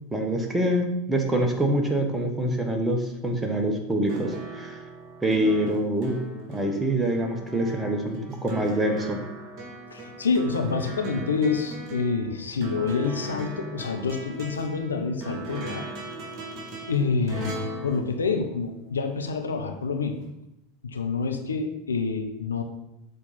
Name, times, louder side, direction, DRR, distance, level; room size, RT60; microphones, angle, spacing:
voice 1, 0.1-4.8 5.2-6.2 6.5-9.2, right 1 dB, 10° right, 2 dB, 1.3 m, -25 dB
sound 1, 4.1-19.0 20.2-20.3, right 2 dB, 40° right, 1.9 m, -38 dB
voice 2, 9.9-15.8 16.9-20.2 20.9-22.6, left 4 dB, 75° left, 5 dB, 0.8 m, -27 dB
6.7 x 4.1 x 5.6 m, 0.87 s
figure-of-eight pair, 80°, 0 cm